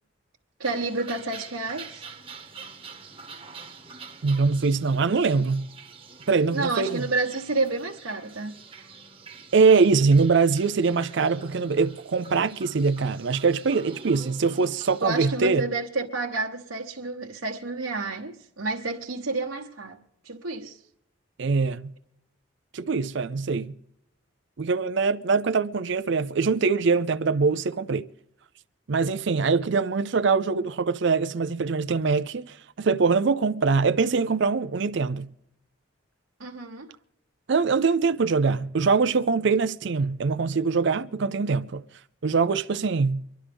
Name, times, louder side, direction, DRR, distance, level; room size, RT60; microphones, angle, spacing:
sound 1, 0.6-15.0, right 5 dB, 25° right, 1.1 m, -46 dB
voice 1, 0.6-2.0 6.5-8.5 15.0-20.8 36.4-36.9, right 3 dB, 75° right, 1.2 m, -30 dB
voice 2, 4.2-5.7 6.3-7.1 9.5-15.6 21.4-21.9 22.7-23.7 24.6-28.1 28.9-35.3 37.5-41.8 42.2-43.2, right 4 dB, 60° right, 0.5 m, -23 dB
24.5 x 11.5 x 3.5 m
head